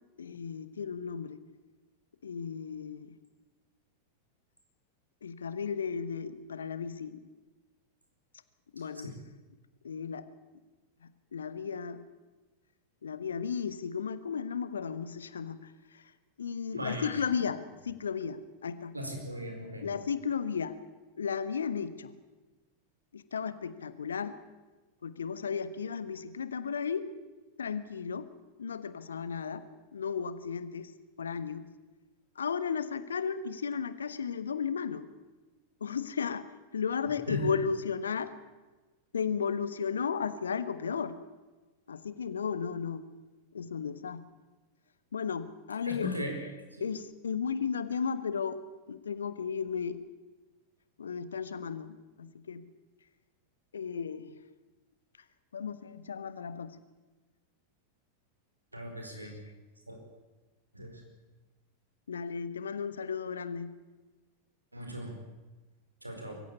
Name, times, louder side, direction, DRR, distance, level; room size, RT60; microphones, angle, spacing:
voice 1, 0.2-1.4 2.2-3.2 5.2-7.2 8.7-9.2 9.8-10.3 11.3-12.0 13.0-16.1 16.4-18.9 19.8-20.8 21.2-22.2 23.1-24.4 25.0-27.1 27.6-28.3 28.6-29.6 29.9-30.9 31.2-31.7 32.3-35.1 35.8-36.5 36.7-38.3 39.1-41.2 41.9-43.0 43.5-44.2 45.1-46.2 46.8-48.6 48.9-50.0 51.0-52.6 53.7-54.4 55.5-56.8 59.2-59.3 62.1-63.7, left 6 dB, 70° left, 14 dB, 1.3 m, -34 dB
voice 2, 16.7-17.2 18.9-19.8 37.3-37.4 45.8-46.4 46.7-46.9 58.7-59.4 59.9-60.0 60.7-61.0 64.7-65.2 66.0-66.4, left 1 dB, 85° right, 3 dB, 4.7 m, -38 dB
24.0 x 15.0 x 8.4 m, 1.2 s
figure-of-eight pair, 90°, 0 cm